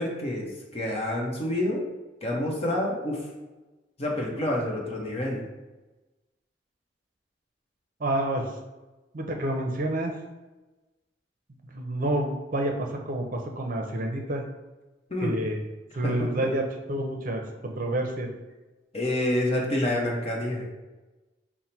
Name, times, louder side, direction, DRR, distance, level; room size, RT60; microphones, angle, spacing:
voice 1, 0.0-1.8 2.2-3.2 4.0-5.4 15.1-15.4 16.0-16.1 18.9-20.7, left 1 dB, 35° left, -1 dB, 0.9 m, -28 dB
voice 2, 8.0-8.5 9.1-10.1 11.6-14.4 15.2-15.6 16.0-18.3, right 1 dB, 50° right, 3 dB, 0.6 m, -29 dB
5.5 x 2.1 x 4.4 m, 1.1 s
head